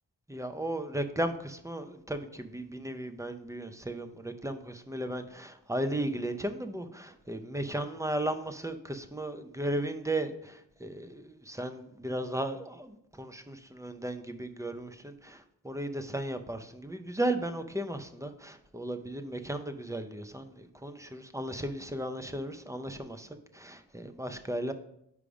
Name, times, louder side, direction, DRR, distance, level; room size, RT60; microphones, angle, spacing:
voice 1, 0.3-24.7, right 1 dB, 10° right, 8 dB, 0.6 m, -35 dB
5.2 x 4.9 x 5.0 m, 0.75 s
wide cardioid pair, 55°, 41 cm